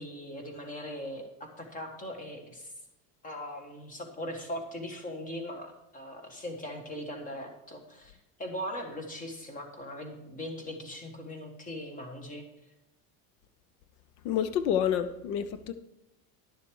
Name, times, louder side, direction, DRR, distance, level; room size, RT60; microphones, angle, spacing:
voice 1, 0.0-2.7 3.2-12.4, equal, 20° left, 1.5 m, -40 dB
voice 2, 14.2-15.7, left 9 dB, 85° left, 0.9 m, -28 dB
11.5 x 7.0 x 4.7 m
cardioid pair, 160°, 43 cm